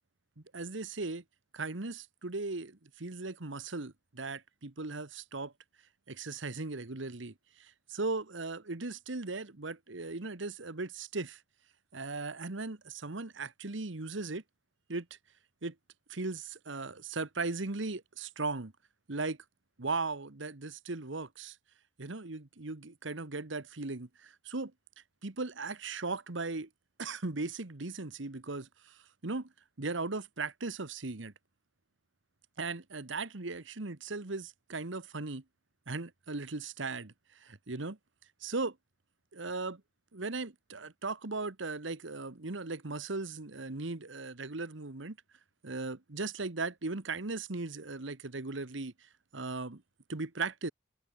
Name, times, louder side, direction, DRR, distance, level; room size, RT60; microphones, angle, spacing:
voice 1, 0.4-1.2 1.5-5.5 6.1-11.4 11.9-14.4 14.9-15.1 15.6-15.7 16.1-18.7 19.1-19.4 19.8-21.6 22.0-24.7 25.2-26.7 27.0-29.5 29.8-31.3 32.6-35.4 35.9-37.1 37.4-38.0 38.4-38.8 39.3-39.8 40.1-45.2 45.6-49.8 50.1-50.7, right 3 dB, 75° right, 1.4 m, -38 dB
head